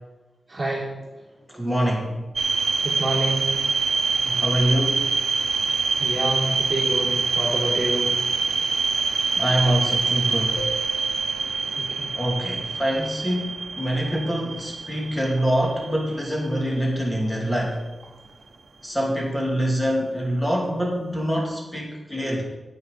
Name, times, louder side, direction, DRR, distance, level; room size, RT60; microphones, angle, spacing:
voice 1, 0.5-0.9 2.8-3.5 5.4-5.6 6.0-8.2 11.4-12.2, right 1 dB, 30° right, -5 dB, 3.1 m, -28 dB
voice 2, 1.5-2.2 4.2-5.0 9.3-10.7 12.1-17.8 18.8-22.4, equal, 10° left, -1 dB, 2.6 m, -25 dB
sound 1, 2.4-17.3, right 4 dB, 65° right, 0.8 m, -25 dB
sound 2, 10.6-13.2, right 3 dB, 75° left, 1.8 m, -40 dB
9.5 x 8.8 x 5.3 m, 1.1 s
wide cardioid pair, 110°, 0 cm